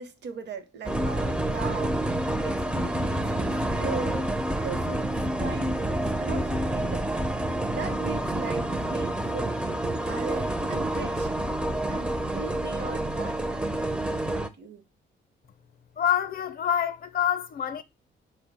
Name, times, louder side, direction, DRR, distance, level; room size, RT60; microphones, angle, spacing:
voice 1, 0.0-4.3 4.6-7.1 7.7-8.6 8.9-9.6 10.1-11.3 11.9-14.8, right 5 dB, 60° right, 0.8 m, -39 dB
sound 1, 0.8-14.5, right 1 dB, 5° right, 0.4 m, -28 dB
voice 2, 16.0-17.8, left 9 dB, 50° left, 0.5 m, -26 dB
4.1 x 2.1 x 3.9 m
cardioid pair, 90°, 20 cm